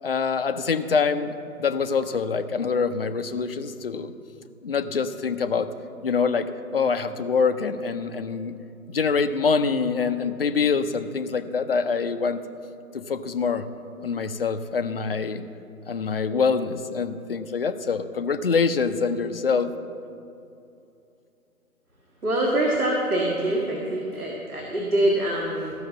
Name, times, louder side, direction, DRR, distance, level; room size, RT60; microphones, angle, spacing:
voice 1, 0.0-4.1 4.6-5.7 6.0-8.5 8.9-12.4 12.9-13.7 14.0-15.4 15.9-19.7, left 5 dB, 40° left, 9 dB, 0.6 m, -25 dB
voice 2, 22.2-25.7, right 1 dB, 75° right, -2 dB, 2.0 m, -24 dB
14.5 x 6.3 x 7.0 m, 2.7 s
figure-of-eight pair, 140°, 44 cm